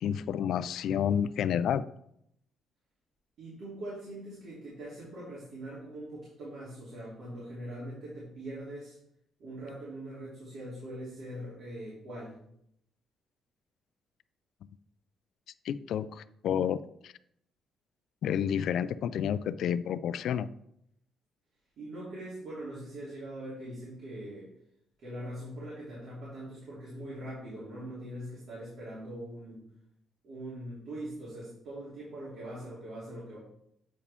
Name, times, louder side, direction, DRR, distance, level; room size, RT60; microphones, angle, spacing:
voice 1, 0.0-1.8 15.6-17.1 18.2-20.5, left 9 dB, 75° left, 15 dB, 0.3 m, -30 dB
voice 2, 3.4-8.9 9.4-12.3 21.8-24.5 25.0-29.6 30.2-33.4, right 1 dB, 70° right, -8 dB, 2.9 m, -42 dB
8.2 x 4.8 x 3.5 m, 0.73 s
cardioid pair, 90°, 0 cm